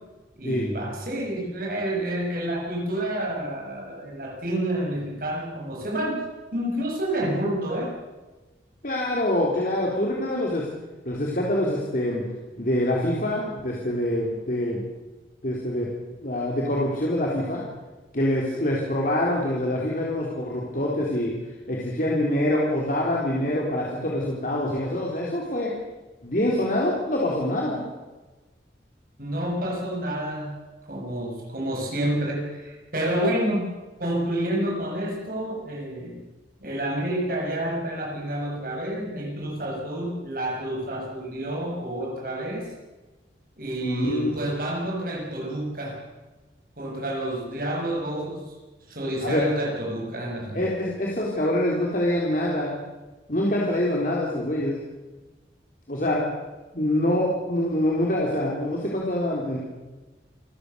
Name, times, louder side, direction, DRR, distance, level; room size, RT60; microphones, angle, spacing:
voice 1, 0.4-6.2 6.5-8.0 29.2-33.7 34.0-36.2 36.6-42.7 43.6-46.0 46.8-48.6 48.9-50.8, right 1 dB, 50° right, -1 dB, 7.2 m, -29 dB
voice 2, 8.8-10.7 11.1-12.2 12.6-14.8 15.4-15.9 16.2-17.6 18.1-21.3 21.7-25.7 26.2-27.8 43.8-44.5 49.2-49.4 50.5-52.8 53.3-54.8 55.9-56.2 56.7-59.6, left 1 dB, 50° left, -3 dB, 3.8 m, -25 dB
28.5 x 15.0 x 6.9 m, 1.2 s
head